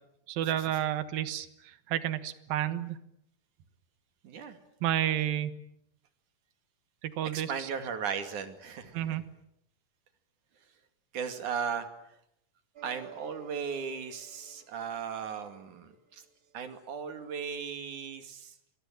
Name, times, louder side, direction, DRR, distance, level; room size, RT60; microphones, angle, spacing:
voice 1, 0.3-3.0 4.8-5.6 7.0-7.7 8.9-9.2, right 11 dB, 90° right, 13 dB, 3.1 m, -31 dB
voice 2, 4.2-4.6 7.3-9.2 11.1-11.9 12.8-16.2 16.5-18.6, right 6 dB, 60° right, 8 dB, 3.7 m, -37 dB
sound 1, 12.8-16.6, right 8 dB, 30° right, 2.2 m, -53 dB
26.5 x 22.0 x 9.0 m, 0.77 s
omnidirectional pair, 4.0 m